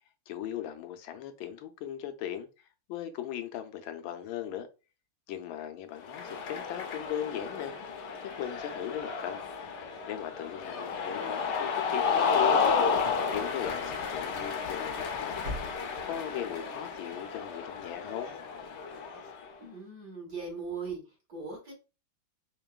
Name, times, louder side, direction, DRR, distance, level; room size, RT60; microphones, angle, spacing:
voice 1, 0.3-4.7 5.3-7.7 8.4-9.4 10.1-12.6 13.3-18.4, left 10 dB, 80° left, 1.3 m, -38 dB
Cheering, 6.0-19.5, left 5 dB, 65° left, 1.1 m, -32 dB
sound 1, 12.6-13.3 13.6-14.0 14.3-14.5 14.9-16.2 16.5-16.6 17.1-17.2, left 1 dB, 65° right, 1.5 m, -43 dB
voice 2, 19.6-21.7, right 4 dB, 45° right, 2.3 m, -39 dB
4.5 x 2.9 x 2.3 m
omnidirectional pair, 2.2 m